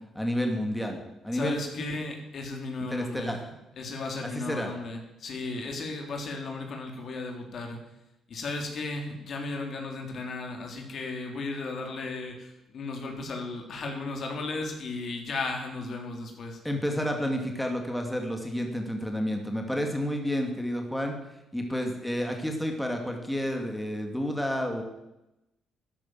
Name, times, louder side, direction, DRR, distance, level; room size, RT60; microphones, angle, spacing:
voice 1, 0.1-1.9 2.9-3.4 4.2-4.7 16.6-21.2 21.5-24.8, equal, 5° left, 3 dB, 2.5 m, -30 dB
voice 2, 1.3-3.4 3.8-7.8 8.3-16.6, left 3 dB, 55° left, 2 dB, 3.6 m, -35 dB
13.0 x 10.5 x 7.7 m, 0.92 s
cardioid pair, 90°, 0 cm